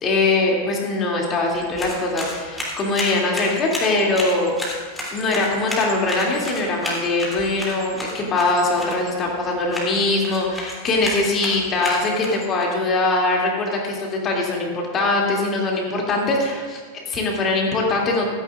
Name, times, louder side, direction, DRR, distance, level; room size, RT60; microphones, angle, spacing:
voice 1, 0.0-4.5 5.1-18.3, left 2 dB, 25° left, -1 dB, 2.5 m, -22 dB
sound 1, 1.5-12.6, left 1 dB, 5° left, 3.1 m, -32 dB
15.5 x 13.5 x 2.5 m, 1.5 s
figure-of-eight pair, 90°, 0 cm